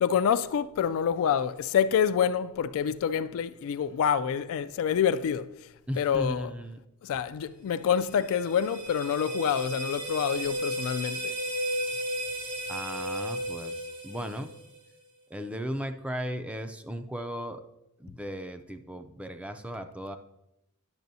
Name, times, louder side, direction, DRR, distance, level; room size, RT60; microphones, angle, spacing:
voice 1, 0.0-5.5 6.0-6.5 7.0-11.3, left 8 dB, 65° left, 0.3 m, -27 dB
voice 2, 5.9-6.8 12.7-14.6 15.3-17.6 18.0-20.2, equal, 5° right, 0.4 m, -36 dB
sound 1, 7.8-14.9, equal, 80° right, 2.2 m, -34 dB
10.5 x 6.7 x 2.7 m
head